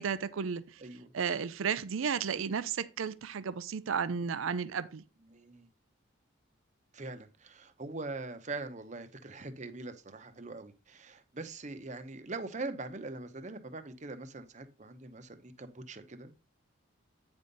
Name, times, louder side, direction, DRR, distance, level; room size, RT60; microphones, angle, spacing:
voice 1, 0.0-0.8 1.1-5.0, right 6 dB, 80° right, 0.5 m, -33 dB
voice 2, 0.8-1.1 5.3-5.7 6.9-16.3, right 3 dB, 35° right, 0.8 m, -42 dB
8.9 x 5.3 x 4.0 m
head